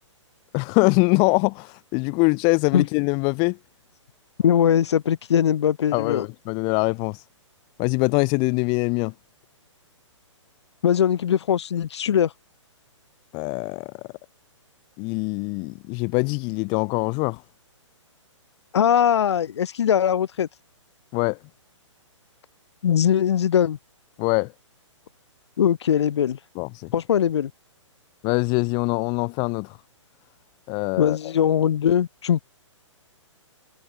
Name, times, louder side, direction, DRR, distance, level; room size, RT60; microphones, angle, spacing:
voice 1, 0.5-3.6 5.9-7.2 7.8-9.1 13.3-13.9 15.0-17.4 21.1-21.4 24.2-24.5 26.5-26.9 28.2-29.8 30.7-31.2, left 33 dB, 30° left, 1.6 m, -23 dB
voice 2, 4.4-6.3 10.8-12.3 18.7-20.5 22.8-23.8 25.6-26.4 26.9-27.5 31.0-32.4, left 9 dB, 60° left, 1.6 m, -21 dB
figure-of-eight pair, 130°, 16 cm